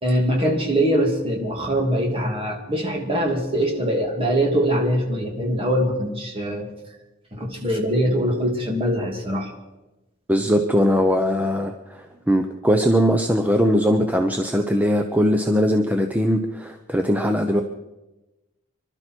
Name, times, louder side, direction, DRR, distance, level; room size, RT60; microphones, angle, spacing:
voice 1, 0.0-6.7 7.3-9.5, equal, 30° right, 0 dB, 2.6 m, -22 dB
voice 2, 10.3-17.6, equal, 10° right, 4 dB, 0.8 m, -20 dB
25.5 x 12.5 x 4.6 m, 1.0 s
head